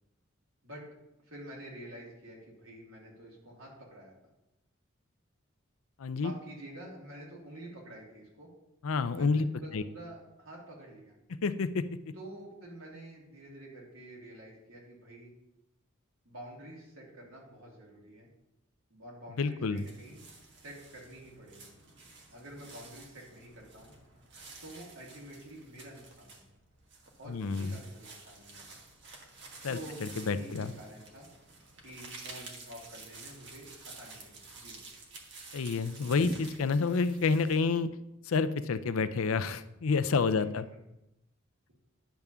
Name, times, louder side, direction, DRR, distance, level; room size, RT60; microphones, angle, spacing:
voice 1, 1.2-4.1 6.2-8.5 9.1-11.2 12.1-15.3 16.2-18.3 18.9-20.2 20.6-21.7 22.3-23.9 24.6-26.4 27.2-28.8 29.7-31.3 31.8-34.8, right 1 dB, 80° right, -3 dB, 2.8 m, -48 dB
voice 2, 6.0-6.3 8.8-9.5 9.7-9.8 11.4-11.8 19.4-19.8 27.3-27.8 29.6-30.7 35.5-37.9 38.3-40.7, left 4 dB, 85° left, 12 dB, 0.5 m, -29 dB
sound 1, 19.8-37.6, right 3 dB, 55° right, 1.4 m, -50 dB
10.5 x 3.6 x 6.8 m, 0.90 s
head